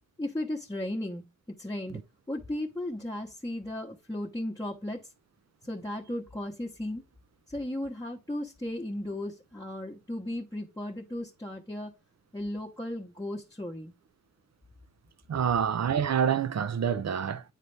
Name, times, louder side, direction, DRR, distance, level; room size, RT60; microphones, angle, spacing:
voice 1, 0.2-1.2 1.6-2.0 2.3-5.1 5.6-7.0 7.5-11.9 12.3-13.9, left 1 dB, 10° left, 1.1 m, -35 dB
voice 2, 15.3-17.4, right 8 dB, 55° right, 0.6 m, -27 dB
9.2 x 4.1 x 3.3 m
wide cardioid pair, 85°, 32 cm